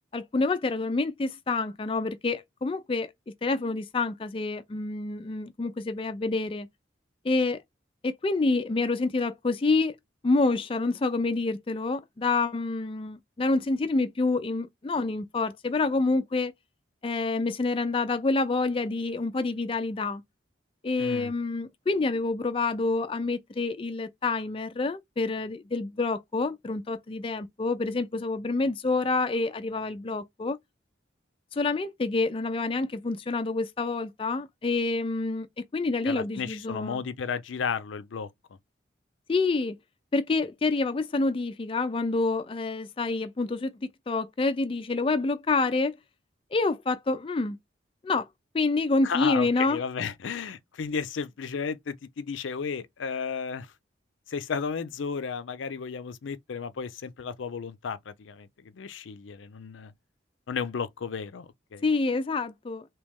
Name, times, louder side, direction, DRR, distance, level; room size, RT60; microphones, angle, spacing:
voice 1, 0.1-3.1 3.4-6.7 7.2-7.6 8.0-9.9 10.2-16.5 17.0-20.2 20.8-30.6 31.5-35.5 35.7-37.0 39.3-39.8 40.1-46.0 46.5-47.6 48.0-48.3 48.5-49.8 61.8-62.9, left 3 dB, 30° left, 0.3 m, -27 dB
voice 2, 21.0-21.3 36.0-38.3 49.0-53.7 54.3-59.9 60.5-61.8, left 6 dB, 85° left, 0.5 m, -33 dB
3.1 x 2.9 x 3.5 m
head